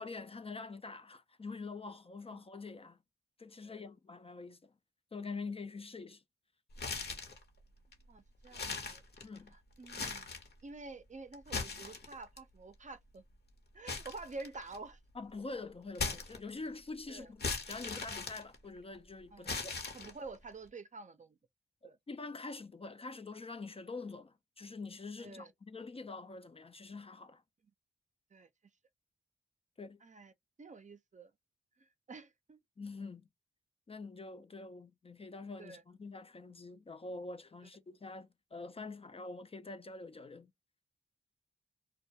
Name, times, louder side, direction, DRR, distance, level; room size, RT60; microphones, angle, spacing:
voice 1, 0.0-3.0 3.4-4.7 5.1-6.2 9.2-9.5 15.1-19.7 21.8-27.4 29.8-30.0 32.8-33.3 33.9-40.5, left 3 dB, 30° left, 0.4 m, -45 dB
sound 1, 6.7-7.4 7.9-8.0 8.5-9.5 9.8-10.5 11.3-12.4 13.9-14.9 15.9-16.8 17.4-19.0 19.4-20.4, left 4 dB, 55° left, 0.9 m, -39 dB
voice 2, 8.1-9.0 9.5-10.3 10.6-13.2 13.7-15.0 17.1-17.3 19.3-19.5 19.9-21.4 21.8-22.0 25.2-25.5 28.3-28.5 30.0-30.3 30.6-31.3 31.8-32.6 35.6-35.8, right 3 dB, 35° right, 0.5 m, -49 dB
2.2 x 2.2 x 2.7 m
cardioid pair, 50°, 20 cm